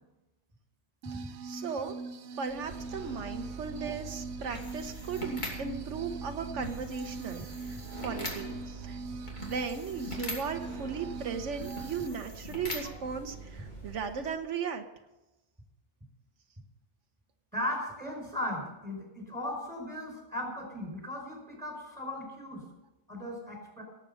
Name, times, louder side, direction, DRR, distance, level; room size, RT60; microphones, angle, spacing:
sound 1, 1.0-12.1, right 3 dB, 70° right, 1.0 m, -42 dB
voice 1, 1.4-2.0 2.4-9.0 9.4-14.8, right 5 dB, 85° right, 6 dB, 1.3 m, -37 dB
sound 2, 2.4-14.4, right 1 dB, 40° left, 3.0 m, -42 dB
voice 2, 17.5-22.6 23.1-23.8, left 1 dB, 10° right, 1 dB, 5.1 m, -37 dB
18.0 x 8.1 x 5.6 m, 1.0 s
omnidirectional pair, 1.2 m